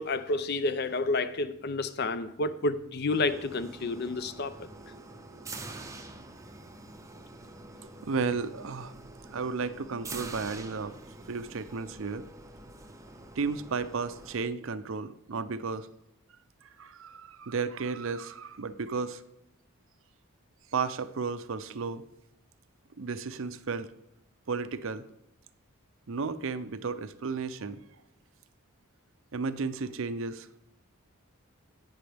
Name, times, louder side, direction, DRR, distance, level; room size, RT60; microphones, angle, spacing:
voice 1, 0.0-4.7, left 3 dB, 45° left, 12 dB, 0.5 m, -30 dB
sound 1, 3.1-14.5, right 3 dB, 15° right, 0.6 m, -46 dB
voice 2, 8.0-8.9 9.3-10.9 11.3-12.2 13.4-15.9 16.6-19.2 20.7-22.0 23.0-23.9 24.5-25.0 26.1-27.8 29.3-30.5, right 4 dB, 60° right, 12 dB, 0.5 m, -33 dB
17.0 x 6.1 x 3.4 m, 0.83 s
head